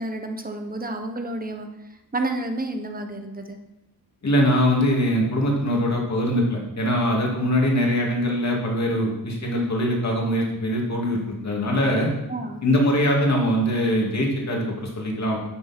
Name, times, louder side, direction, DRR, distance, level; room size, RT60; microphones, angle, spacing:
voice 1, 0.0-1.7 2.1-3.6 12.3-12.6, right 2 dB, 25° right, 5 dB, 1.2 m, -30 dB
voice 2, 4.2-12.1 12.6-15.4, equal, 50° left, -1 dB, 2.5 m, -22 dB
11.0 x 6.5 x 4.5 m, 0.90 s
wide cardioid pair, 100°, 36 cm